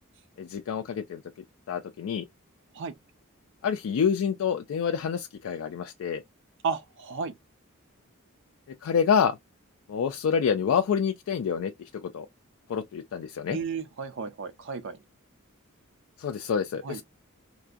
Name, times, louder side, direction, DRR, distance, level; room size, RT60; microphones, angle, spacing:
voice 1, 0.4-1.2 1.7-2.2 3.6-6.2 8.8-9.4 9.9-12.3 12.7-13.6 16.2-17.0, left 7 dB, 70° left, 0.3 m, -27 dB
voice 2, 6.6-7.3 13.5-15.0 16.8-17.0, right 5 dB, 60° right, 0.4 m, -33 dB
3.6 x 2.5 x 2.3 m
head